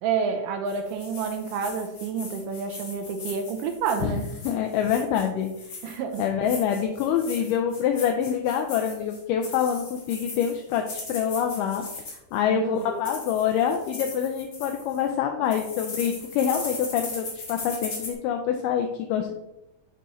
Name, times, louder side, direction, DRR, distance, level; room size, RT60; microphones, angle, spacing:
voice 1, 0.0-4.3 5.8-6.3 12.5-13.0, right 6 dB, 80° right, 6 dB, 2.1 m, -29 dB
sound 1, 0.7-12.4 12.8-15.1 15.5-18.1, left 3 dB, 45° left, 1.2 m, -39 dB
voice 2, 4.4-5.5 6.2-11.9 12.3-19.3, left 8 dB, 80° left, 4 dB, 2.1 m, -26 dB
6.8 x 6.0 x 3.0 m, 0.91 s
omnidirectional pair, 4.0 m